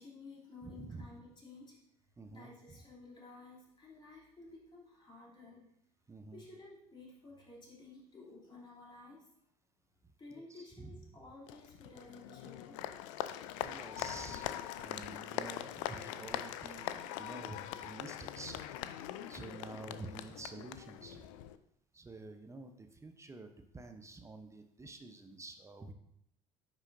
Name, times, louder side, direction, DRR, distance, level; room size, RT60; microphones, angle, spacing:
voice 1, 0.0-1.8 2.3-5.7 6.3-9.3 10.2-12.9, left 3 dB, 25° left, -5 dB, 3.0 m, -54 dB
voice 2, 0.6-1.1 2.2-2.5 6.1-6.4 10.3-11.0 13.6-18.6 19.3-21.3 21.9-25.9, right 3 dB, 15° right, 6 dB, 0.8 m, -49 dB
Applause, 11.5-21.6, left 12 dB, 60° left, 0.4 m, -42 dB
9.7 x 6.1 x 2.7 m, 0.74 s
figure-of-eight pair, 60°, 18 cm